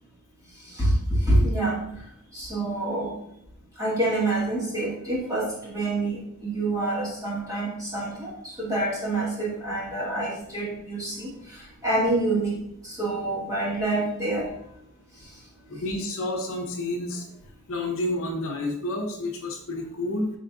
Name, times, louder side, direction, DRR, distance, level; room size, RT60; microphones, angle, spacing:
voice 1, 0.6-1.8 2.3-3.1 3.8-12.6 12.8-14.5, right 2 dB, 15° right, -6 dB, 1.4 m, -27 dB
voice 2, 15.7-17.3 17.7-20.3, left 1 dB, 65° left, 0 dB, 0.8 m, -30 dB
4.7 x 3.7 x 2.4 m, 0.77 s
head